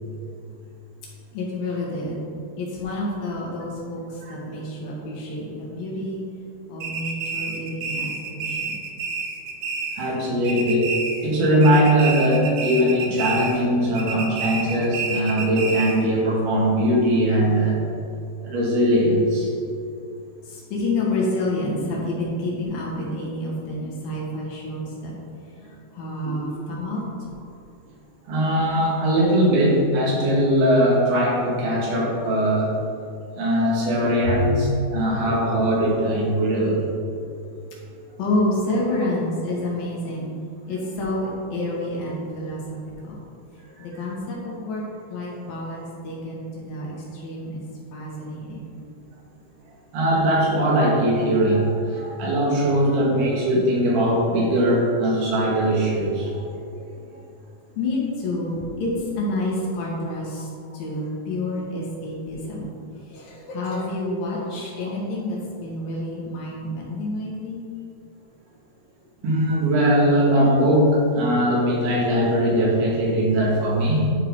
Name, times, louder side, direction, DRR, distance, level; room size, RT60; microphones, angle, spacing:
voice 1, 1.3-2.2 2.6-6.2 6.7-8.8 20.4-25.1 25.6-27.0 34.2-34.3 38.2-40.3 40.7-42.6 43.0-43.2 43.8-44.8 45.1-47.6 47.9-48.7 57.8-60.5 60.7-62.7 63.1-67.7, left 1 dB, 65° left, -4 dB, 3.4 m, -29 dB
voice 2, 4.2-4.6 10.0-11.0 11.2-17.8 18.4-19.5 26.2-26.4 28.3-32.8 33.4-36.9 43.9-44.0 49.9-56.4 69.2-74.1, equal, 85° right, -4 dB, 3.9 m, -20 dB
sound 1, 6.8-10.2 10.4-11.4 11.6-13.7 14.0-16.1, right 4 dB, 70° right, 2.0 m, -29 dB
11.5 x 4.8 x 5.3 m, 2.4 s
omnidirectional pair, 4.4 m